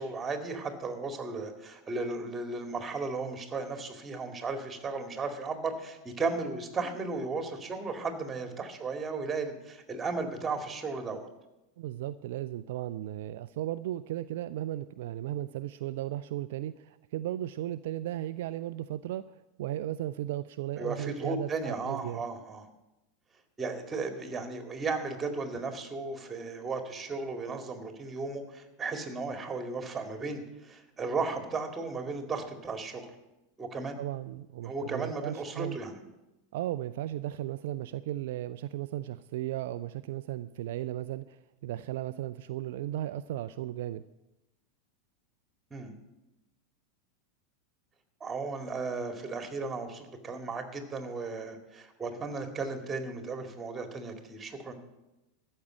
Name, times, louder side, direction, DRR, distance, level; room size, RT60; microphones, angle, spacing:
voice 1, 0.0-11.3 20.8-22.7 23.6-33.1 33.6-34.0 34.6-36.0 45.7-45.9 48.2-54.7, right 3 dB, 20° right, 6 dB, 2.2 m, -35 dB
voice 2, 11.8-22.2 34.0-35.8 36.5-44.0, right 13 dB, 60° right, 12 dB, 0.4 m, -36 dB
13.5 x 6.5 x 9.2 m, 0.97 s
figure-of-eight pair, 90°, 0 cm